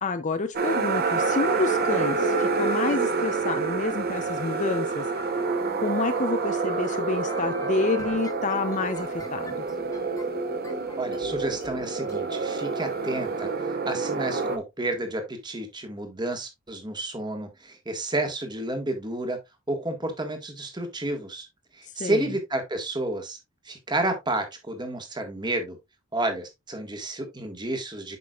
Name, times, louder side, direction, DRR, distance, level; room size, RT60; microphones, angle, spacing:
voice 1, 0.0-5.1 5.8-9.6 22.0-22.4, left 3 dB, 35° left, 0.6 m, -28 dB
sound 1, 0.5-14.6, right 4 dB, 45° right, 0.9 m, -27 dB
sound 2, 5.4-12.2, left 1 dB, 15° left, 1.5 m, -44 dB
voice 2, 11.0-19.4 19.7-21.5 21.7-23.4 23.6-25.8 26.1-28.2, right 2 dB, 20° right, 1.6 m, -31 dB
8.4 x 6.0 x 2.4 m
head